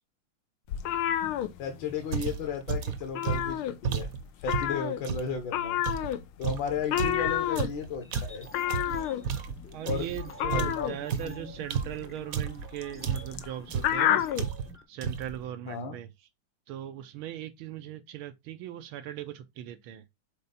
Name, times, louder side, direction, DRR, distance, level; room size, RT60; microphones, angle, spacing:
sound 1, 0.7-2.2 2.4-2.7 3.0-4.1 4.4-14.5, left 11 dB, 85° left, 1.6 m, -30 dB
voice 1, 1.6-5.8 6.4-8.5 9.9-10.1 10.5-10.9 11.2-11.5 15.7-16.0, left 6 dB, 65° left, 1.9 m, -34 dB
sound 2, 2.1-5.3 5.8-10.2 10.5-12.7 13.0-13.4 13.7-14.0 14.3-14.8 15.0-15.4, right 7 dB, 55° right, 1.1 m, -33 dB
sound 3, 8.0-14.8, equal, 15° left, 0.5 m, -49 dB
voice 2, 9.7-14.2 14.9-16.1 16.7-20.0, right 12 dB, 85° right, 1.6 m, -39 dB
7.0 x 4.3 x 4.0 m
omnidirectional pair, 2.3 m